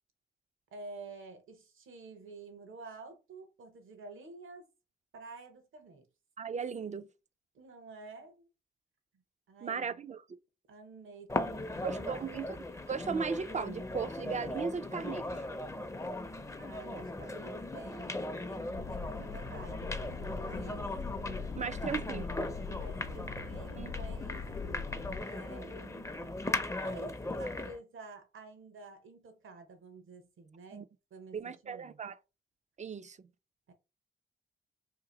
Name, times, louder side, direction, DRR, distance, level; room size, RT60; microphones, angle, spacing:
voice 1, 0.7-4.7 5.1-6.1 7.5-8.5 9.5-10.0 10.7-12.5 16.6-20.9 21.8-22.0 22.6-24.5 25.2-26.2 26.8-30.8 31.1-32.0 33.7-33.8, right 3 dB, 75° right, 1.0 m, -50 dB
voice 2, 6.4-7.1 9.6-10.2 11.8-12.6 12.9-15.3 21.6-22.3 23.8-23.9 30.7-30.8 31.3-32.2 32.8-33.2, right 6 dB, 35° right, 0.4 m, -36 dB
sound 1, 11.3-27.8, left 2 dB, 15° left, 0.5 m, -38 dB
sound 2, 18.7-25.2, left 5 dB, 85° left, 0.6 m, -42 dB
2.9 x 2.6 x 3.8 m
supercardioid pair, 55°, 21 cm